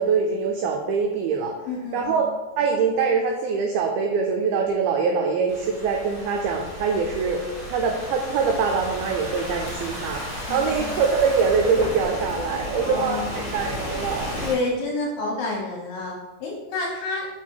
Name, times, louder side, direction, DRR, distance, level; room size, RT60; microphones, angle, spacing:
voice 1, 0.0-1.5 1.9-2.3 2.6-7.4 7.7-14.4, right 5 dB, 90° right, 1 dB, 2.1 m, -23 dB
voice 2, 1.7-2.3 10.5-10.9 12.7-13.6 14.4-17.3, left 2 dB, 70° left, -2 dB, 2.3 m, -29 dB
Thunderstorm / Rain, 5.5-14.5, equal, 30° right, 1.5 m, -34 dB
6.0 x 4.0 x 4.5 m, 1.1 s
omnidirectional pair, 5.0 m